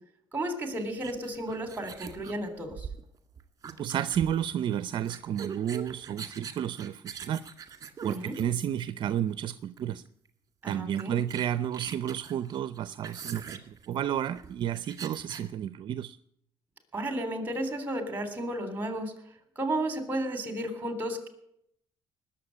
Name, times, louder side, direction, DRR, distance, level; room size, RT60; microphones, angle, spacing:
voice 1, 0.3-2.9 8.1-8.4 10.6-11.2 16.9-19.1 19.6-21.3, right 1 dB, 20° right, 8 dB, 3.6 m, -33 dB
sound 1, 0.9-9.0 9.8-10.0 10.2-10.3 10.7-15.5, right 7 dB, 35° right, 1.9 m, -43 dB
voice 2, 3.8-7.4 8.0-10.0 10.7-16.2, right 10 dB, 55° right, 14 dB, 0.6 m, -31 dB
19.5 x 7.4 x 9.8 m, 0.73 s
cardioid pair, 115°, 10 cm